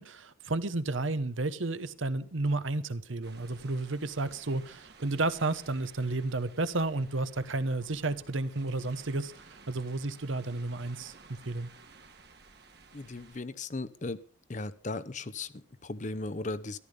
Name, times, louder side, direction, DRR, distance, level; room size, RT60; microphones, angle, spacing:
voice 1, 0.0-11.1 11.4-11.7, right 2 dB, 75° right, 1.0 m, -32 dB
sound 1, 3.2-13.4, right 4 dB, 50° right, 1.7 m, -55 dB
voice 2, 12.9-14.2 14.5-16.8, left 2 dB, 35° left, 0.7 m, -37 dB
14.0 x 11.5 x 5.3 m
head